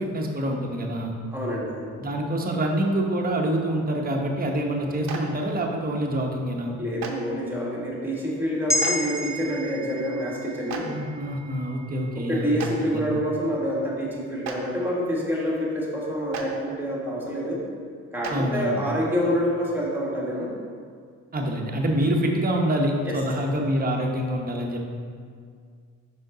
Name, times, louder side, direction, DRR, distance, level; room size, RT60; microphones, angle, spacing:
voice 1, 0.0-1.1 2.0-6.8 10.8-12.5 12.8-13.1 18.3-18.8 21.3-24.9, right 1 dB, 30° right, 1 dB, 0.9 m, -26 dB
voice 2, 1.3-2.0 6.8-10.9 12.2-17.6 18.1-20.5 23.0-23.2, equal, 5° right, -4 dB, 1.5 m, -27 dB
Clapping, 5.1-5.2 7.0-7.1 8.8-8.9 10.7-10.8 12.6-12.7 14.4-14.5 16.3-16.4 18.2-18.3, right 8 dB, 60° right, 0.8 m, -32 dB
sound 1, 8.7-13.2 13.6-13.7, left 1 dB, 10° left, 0.5 m, -32 dB
5.1 x 5.1 x 3.8 m, 2.1 s
cardioid pair, 90°, 30 cm